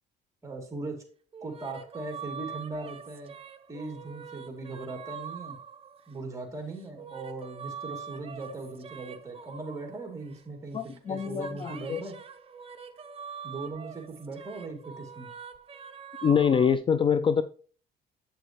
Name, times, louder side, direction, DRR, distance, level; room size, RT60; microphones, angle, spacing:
voice 1, 0.4-1.0 1.4-3.3 3.7-5.6 6.1-10.8 11.1-12.1 13.4-15.3, right 3 dB, 20° right, 2 dB, 2.9 m, -39 dB
fanciful female vocal, 1.3-6.3 6.8-10.5 10.8-16.8, right 7 dB, 35° right, 0.8 m, -44 dB
voice 2, 10.7-12.0 16.2-17.4, left 7 dB, 30° left, 13 dB, 0.4 m, -25 dB
8.7 x 6.8 x 3.0 m, 0.42 s
cardioid pair, 110°, 17 cm